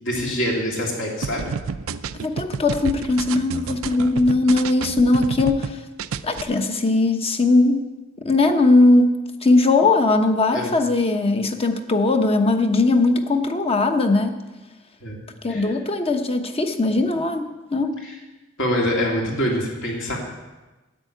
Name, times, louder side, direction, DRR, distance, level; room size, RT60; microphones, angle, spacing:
voice 1, 0.0-1.5 10.5-10.7 15.0-15.2 15.5-15.7 18.0-18.1 18.6-20.2, equal, 65° left, -2 dB, 2.8 m, -25 dB
sound 1, 1.2-5.7 6.0-6.4, right 5 dB, 90° right, 0.5 m, -29 dB
voice 2, 2.2-5.8 6.2-7.8 8.2-14.4 15.4-17.4 17.7-18.0, left 2 dB, 30° left, 6 dB, 1.0 m, -19 dB
10.5 x 8.3 x 9.3 m, 1.1 s
head